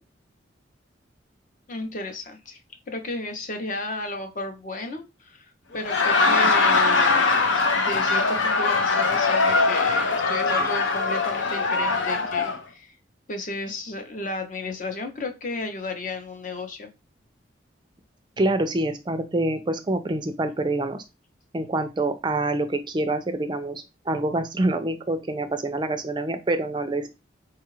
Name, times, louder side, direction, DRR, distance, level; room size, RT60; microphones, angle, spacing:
voice 1, 1.7-2.6 2.9-7.4 7.8-12.9 13.3-16.9, left 2 dB, 45° left, 6 dB, 0.7 m, -33 dB
Laughter, 5.7-12.6, left 3 dB, 90° left, 0.6 m, -21 dB
voice 2, 18.4-21.0 21.5-27.1, right 2 dB, 25° right, 8 dB, 0.4 m, -26 dB
4.6 x 2.3 x 3.1 m, 0.25 s
head